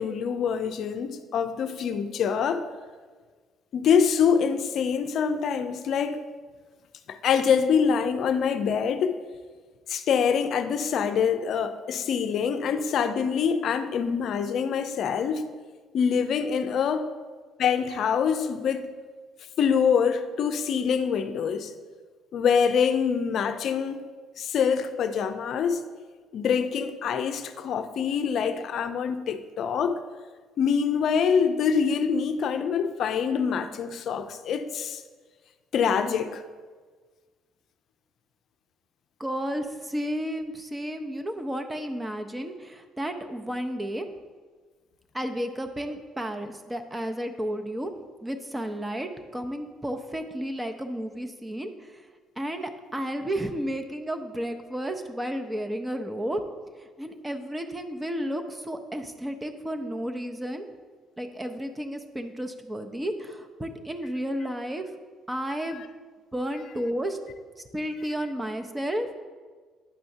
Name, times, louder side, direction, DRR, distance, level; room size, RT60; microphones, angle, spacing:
voice 1, 0.0-2.6 3.7-6.2 7.1-9.2 9.9-15.4 15.9-17.1 17.6-18.9 19.6-21.7 22.3-24.1 24.4-25.8 26.3-30.0 30.6-35.0 35.7-36.4, left 6 dB, 60° left, 9 dB, 0.5 m, -25 dB
voice 2, 39.2-44.1 45.1-47.9 48.2-52.1 52.4-56.4 56.8-60.7 61.2-64.9 65.3-65.8 66.3-67.2 67.7-69.2, equal, 15° right, 6 dB, 0.6 m, -32 dB
9.7 x 5.5 x 2.7 m, 1.5 s
hypercardioid pair, 55°, 0 cm